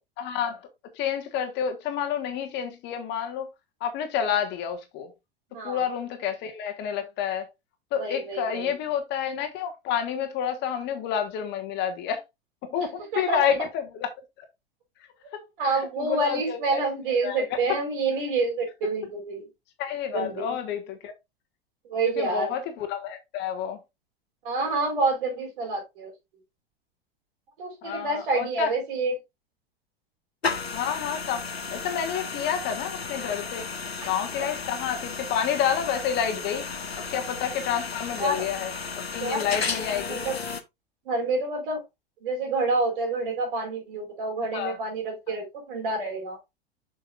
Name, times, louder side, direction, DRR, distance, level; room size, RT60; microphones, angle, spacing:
voice 1, 0.2-0.6 0.9-3.5 3.8-5.1 5.6-7.5 7.9-12.2 12.7-14.1 15.3-16.8 17.2-17.4 19.8-21.1 22.1-23.8 27.8-28.7 30.7-33.7 34.0-36.7 37.1-40.2 44.5-44.8, left 8 dB, 35° left, 1.5 m, -29 dB
voice 2, 5.5-5.8 8.0-8.7 13.1-13.4 15.6-19.5 20.1-20.5 21.8-22.5 24.4-26.1 27.6-29.1 34.4-34.5 37.0-37.2 38.2-38.4 39.2-39.4 40.1-40.3 41.0-41.8 42.2-46.4, right 3 dB, 55° right, 4.3 m, -28 dB
sound 1, 30.4-40.6, left 5 dB, 80° left, 0.9 m, -34 dB
6.9 x 6.6 x 2.5 m
figure-of-eight pair, 90°, 31 cm